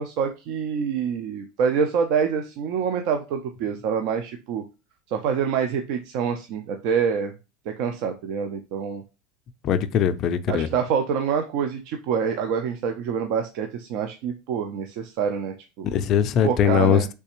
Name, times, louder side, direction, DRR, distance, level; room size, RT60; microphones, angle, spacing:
voice 1, 0.0-4.6 5.1-7.3 7.7-9.0 10.5-15.9 16.4-17.1, right 7 dB, 60° right, 0.4 m, -26 dB
voice 2, 9.6-10.7 15.9-17.1, left 8 dB, 40° left, 0.3 m, -21 dB
3.3 x 3.2 x 2.9 m
supercardioid pair, 130°, 0 cm